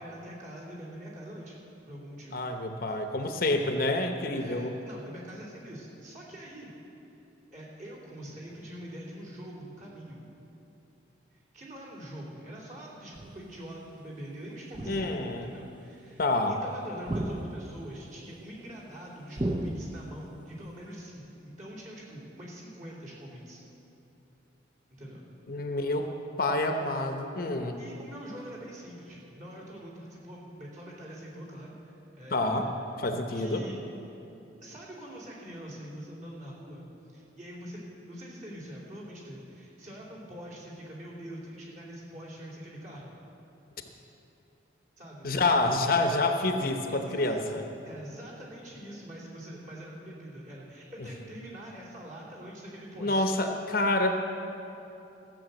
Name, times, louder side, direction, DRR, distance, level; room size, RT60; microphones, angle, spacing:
voice 1, 0.0-1.6 1.9-2.4 4.3-6.7 7.1-7.2 7.5-10.2 11.3-16.2 16.5-23.6 24.9-25.2 27.8-32.7 33.3-33.8 34.1-34.2 34.6-37.8 38.1-43.1 45.0-45.3 46.9-53.3, equal, 40° right, -5 dB, 2.9 m, -44 dB
voice 2, 2.3-4.7 14.9-15.5 16.2-16.6 25.5-26.1 26.4-27.8 32.3-32.7 33.0-33.6 45.2-47.6 53.0-54.2, left 2 dB, 50° left, 5 dB, 0.8 m, -27 dB
sound 1, 13.1-13.6 14.7-15.5 17.1-18.0 19.4-20.3, right 1 dB, 25° right, 0.5 m, -35 dB
14.5 x 6.8 x 7.8 m, 3.0 s
head